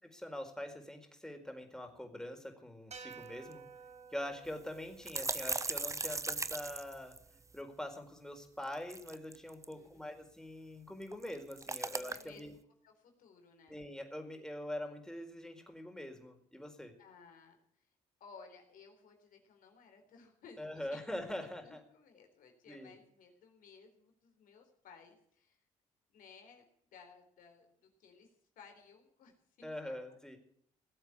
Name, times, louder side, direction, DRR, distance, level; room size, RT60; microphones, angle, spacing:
voice 1, 0.0-3.6 4.1-7.1 7.5-12.5 13.7-16.9 20.6-21.8 22.7-22.9 29.6-30.4, left 1 dB, 5° left, 4 dB, 4.5 m, -44 dB
sound 1, 2.9-7.3, right 5 dB, 50° right, 7.2 m, -54 dB
sound 2, 3.1-3.2 3.5-3.6 4.5-7.6 8.6-9.7 11.0-12.4, right 3 dB, 20° right, 1.0 m, -38 dB
voice 2, 9.7-10.0 11.8-12.4 12.8-13.8 17.0-17.9 18.2-21.0 21.4-25.6 26.1-26.7 26.9-30.4, left 5 dB, 70° left, 4 dB, 3.8 m, -58 dB
19.0 x 8.0 x 8.3 m, 0.67 s
supercardioid pair, 60°, 15 cm